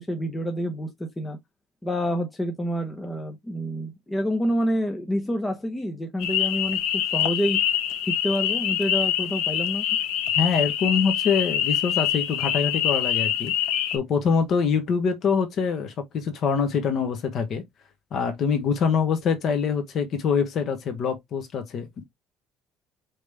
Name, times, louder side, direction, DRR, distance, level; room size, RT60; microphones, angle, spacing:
voice 1, 0.0-1.4 1.8-7.6 8.1-9.9, equal, 10° left, 0.8 m, -28 dB
sound 1, 6.2-14.0, left 10 dB, 85° left, 1.0 m, -25 dB
voice 2, 10.4-13.5 13.9-17.6 18.1-22.0, left 6 dB, 50° left, 1.1 m, -24 dB
5.2 x 3.0 x 3.3 m
cardioid pair, 150°, 0 cm